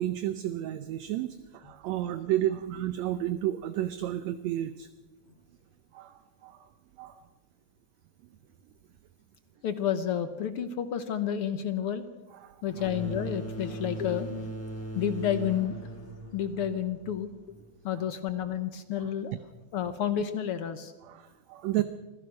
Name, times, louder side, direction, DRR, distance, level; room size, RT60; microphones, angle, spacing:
voice 1, 0.0-4.9 5.9-6.7 7.0-7.2 12.4-12.6 21.0-21.8, right 13 dB, 70° right, 11 dB, 1.9 m, -32 dB
voice 2, 9.6-12.0 12.6-14.6 14.9-15.8 16.3-17.3 17.8-19.3 19.7-20.9, left 9 dB, 65° left, 11 dB, 1.4 m, -30 dB
sound 1, 12.7-18.2, right 2 dB, 5° left, 2.6 m, -40 dB
26.0 x 16.0 x 6.3 m, 1.2 s
omnidirectional pair, 3.5 m